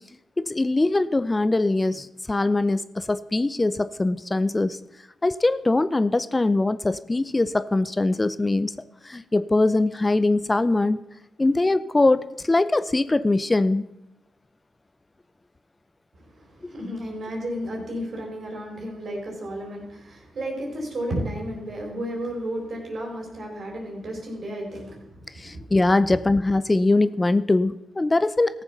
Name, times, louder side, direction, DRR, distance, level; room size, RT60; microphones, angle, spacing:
voice 1, 0.4-4.8 5.2-8.7 9.0-11.0 11.4-13.9 16.6-16.7 25.4-28.6, left 2 dB, 25° left, 15 dB, 0.6 m, -22 dB
voice 2, 16.1-25.1 25.3-25.7, equal, 60° right, 1 dB, 3.9 m, -33 dB
14.5 x 7.0 x 5.8 m, 0.92 s
supercardioid pair, 50°, 0 cm